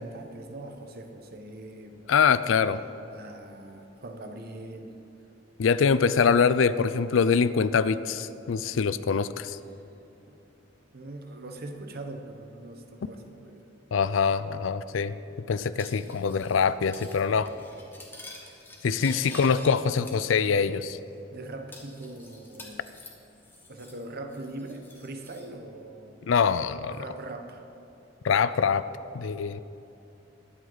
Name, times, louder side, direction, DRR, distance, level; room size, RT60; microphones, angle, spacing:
voice 1, 0.0-2.1 3.1-5.0 10.3-10.4 10.9-13.6 18.2-18.6 18.9-19.2 21.3-22.9 23.7-26.2 26.9-27.6, right 2 dB, 55° right, 5 dB, 1.1 m, -41 dB
voice 2, 2.1-2.8 5.6-9.6 13.9-15.1 15.5-17.5 18.8-21.0 26.3-27.0 28.2-28.8 29.1-29.6, left 6 dB, 80° left, 15 dB, 0.4 m, -24 dB
Cutlery silverware, 15.8-16.6 16.9-17.2 17.5-19.7 20.1-20.8 21.1-21.2 21.7-24.0 24.3-25.5, left 2 dB, 10° left, 1.5 m, -48 dB
21.0 x 8.0 x 4.0 m, 2.9 s
head